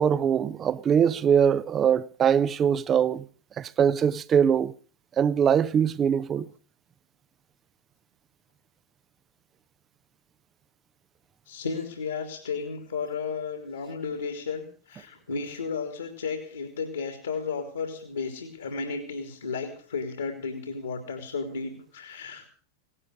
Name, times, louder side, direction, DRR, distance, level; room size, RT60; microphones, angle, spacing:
voice 1, 0.0-3.2 3.6-4.7 5.2-6.5, right 8 dB, 25° right, 0.7 m, -22 dB
voice 2, 11.5-22.5, left 5 dB, 70° left, 2.9 m, -33 dB
17.5 x 12.0 x 6.3 m
figure-of-eight pair, 90°, 0 cm